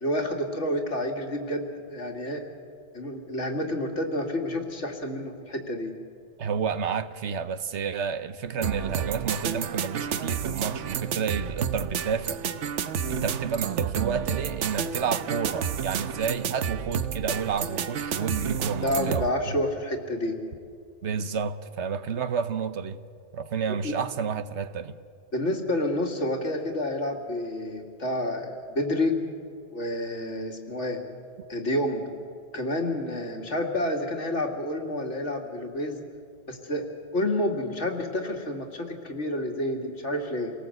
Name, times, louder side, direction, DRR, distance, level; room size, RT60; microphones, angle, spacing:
voice 1, 0.0-2.4 2.9-5.9 13.0-13.2 18.8-20.4 23.8-23.9 25.3-29.2 29.7-31.0 31.5-32.0 32.5-36.0 36.5-40.5, left 1 dB, 80° left, 2.5 m, -29 dB
voice 2, 6.4-12.4 13.1-19.6 21.0-23.0 23.3-24.9, right 6 dB, 75° right, 1.2 m, -30 dB
sound 1, 8.6-19.3, right 7 dB, 90° right, 1.1 m, -30 dB
27.0 x 18.5 x 7.9 m
omnidirectional pair, 1.2 m